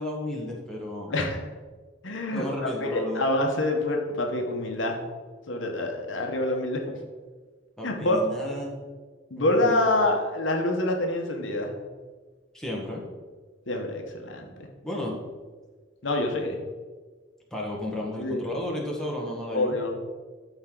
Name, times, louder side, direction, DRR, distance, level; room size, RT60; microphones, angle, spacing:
voice 1, 0.0-1.1 2.3-3.3 7.8-8.8 9.3-9.8 12.5-13.0 14.8-15.2 17.5-19.7, left 1 dB, 5° left, -3 dB, 1.5 m, -33 dB
voice 2, 1.1-1.5 2.0-5.0 5.5-7.0 7.8-8.3 9.3-11.7 13.7-14.7 16.0-16.6 18.2-18.4 19.5-20.0, left 1 dB, 70° left, 2 dB, 1.2 m, -26 dB
12.5 x 4.7 x 3.9 m, 1.4 s
head